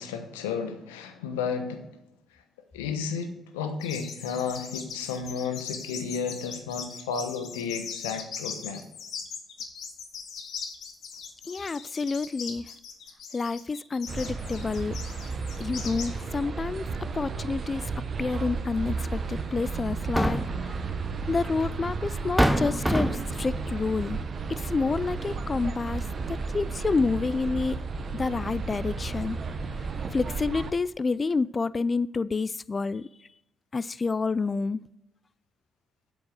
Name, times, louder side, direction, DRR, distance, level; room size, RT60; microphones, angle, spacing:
voice 1, 0.0-1.9 2.7-8.8, left 6 dB, 90° left, 7 dB, 0.9 m, -32 dB
sound 1, 3.8-16.1, left 6 dB, 65° left, 1.3 m, -40 dB
voice 2, 11.4-12.7 13.3-15.0 15.6-16.9 17.1-17.9 18.2-20.8 21.3-24.2 24.5-27.8 28.1-29.4 30.1-33.1 33.7-34.8, left 4 dB, 35° left, 19 dB, 0.3 m, -29 dB
sound 2, 14.1-30.7, right 4 dB, 50° right, 0.9 m, -33 dB
sound 3, 18.8-18.9 19.9-20.7 21.7-21.8 22.4-23.4, equal, 5° right, 0.8 m, -25 dB
8.2 x 5.4 x 7.7 m, 0.86 s
hypercardioid pair, 50°, 0 cm